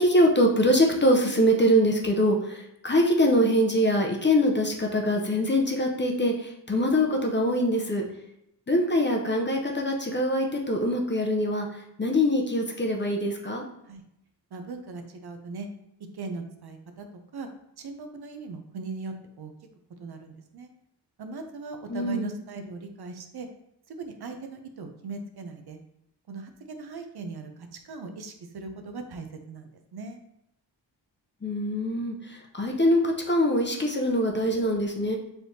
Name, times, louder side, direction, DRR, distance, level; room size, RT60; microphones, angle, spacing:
voice 1, 0.0-8.0 8.7-11.7 12.0-13.6 21.9-22.3 31.4-35.2, equal, 25° left, 1 dB, 0.6 m, -23 dB
voice 2, 14.5-15.7 16.1-17.0 17.3-17.5 17.8-19.5 20.0-20.7 21.2-23.5 23.9-25.8 26.3-27.5 27.8-30.2, right 3 dB, 60° right, 6 dB, 0.6 m, -39 dB
4.5 x 3.3 x 2.7 m, 0.79 s
wide cardioid pair, 95°, 44 cm